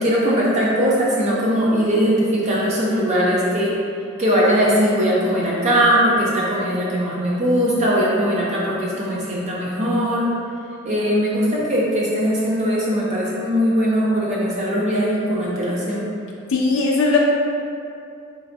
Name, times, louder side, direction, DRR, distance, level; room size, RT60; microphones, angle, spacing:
voice 1, 0.0-3.7 4.2-10.3 10.8-16.1, equal, 35° right, -6 dB, 0.5 m, -20 dB
voice 2, 16.5-17.2, left 4 dB, 70° left, -2 dB, 0.4 m, -18 dB
3.8 x 3.2 x 2.6 m, 2.5 s
head